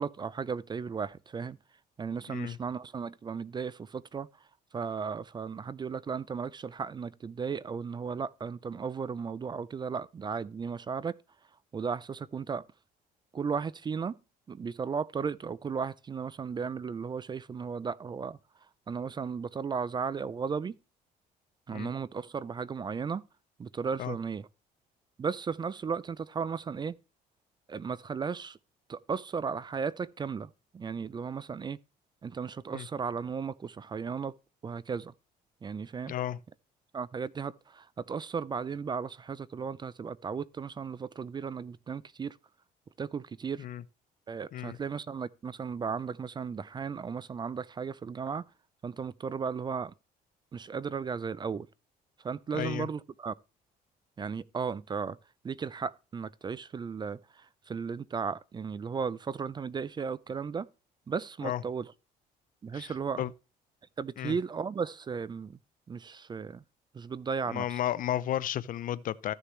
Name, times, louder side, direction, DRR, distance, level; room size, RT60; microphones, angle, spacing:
voice 1, 0.0-1.6 2.0-4.3 4.7-11.2 11.7-12.6 13.3-14.2 14.5-18.4 18.9-20.8 21.7-23.2 23.6-24.5 25.2-27.0 27.7-28.6 28.9-31.8 32.2-34.3 34.6-35.1 35.6-36.1 36.9-42.4 43.0-43.7 44.3-48.4 48.8-49.9 50.5-51.7 52.2-53.4 54.2-55.2 55.4-60.7 61.1-61.9 62.6-63.2 64.0-65.6 65.9-66.6 66.9-67.8, right 6 dB, 25° right, 0.4 m, -35 dB
voice 2, 36.1-36.4 43.6-43.8 44.5-44.8 52.5-52.9 61.4-61.6 62.7-62.9 63.2-63.3 64.2-64.3 67.5-69.3, left 12 dB, 55° left, 0.6 m, -33 dB
14.0 x 6.7 x 3.1 m
cardioid pair, 110°, 17 cm